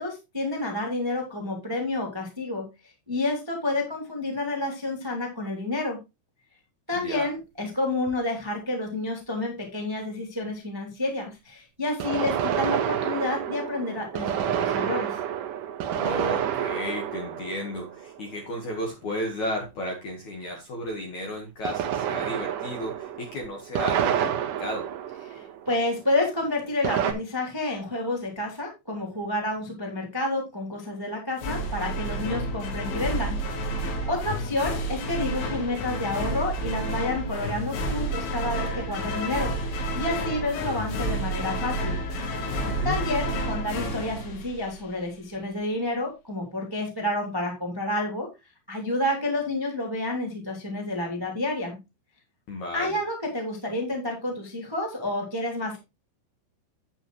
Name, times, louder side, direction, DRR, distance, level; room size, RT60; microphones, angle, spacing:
voice 1, 0.0-6.0 6.9-15.2 25.3-33.4 34.1-42.0 42.8-48.3 48.7-51.8 52.7-55.8, left 2 dB, 10° right, 0 dB, 1.3 m, -29 dB
sound 1, 8.1-8.2 12.0-18.5 21.6-25.9 26.8-27.1, right 10 dB, 85° right, 1.8 m, -29 dB
voice 2, 15.9-24.9 42.6-43.0 52.5-53.0, left 1 dB, 60° left, 1 dB, 2.1 m, -33 dB
sound 2, 31.4-45.0, right 1 dB, 85° left, 4.6 m, -30 dB
9.0 x 8.9 x 3.1 m, 0.25 s
omnidirectional pair, 5.4 m